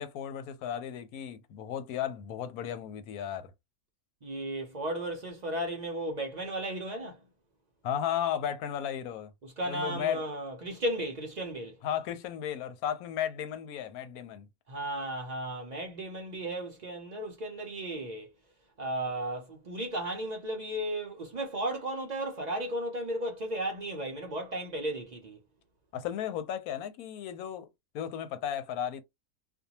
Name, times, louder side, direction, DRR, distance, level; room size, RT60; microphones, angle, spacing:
voice 1, 0.0-3.5 7.8-9.3 9.6-10.2 11.8-14.5 25.9-27.7 27.9-29.0, left 9 dB, 85° left, 1.1 m, -34 dB
voice 2, 4.2-7.2 9.4-11.8 14.7-18.3 18.8-25.4, right 1 dB, 60° right, 0.4 m, -35 dB
2.6 x 2.2 x 2.8 m
omnidirectional pair, 1.5 m